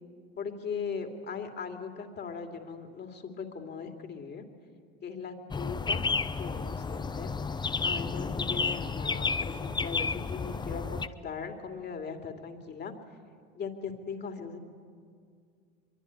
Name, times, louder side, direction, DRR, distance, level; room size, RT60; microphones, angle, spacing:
voice 1, 0.4-4.4 5.0-6.1 6.3-7.3 7.8-12.9 13.5-14.6, left 5 dB, 35° left, 5 dB, 2.9 m, -39 dB
sound 1, 5.5-11.1, left 4 dB, 15° left, 0.7 m, -31 dB
23.5 x 23.0 x 9.7 m, 2.1 s
supercardioid pair, 105°, 30 cm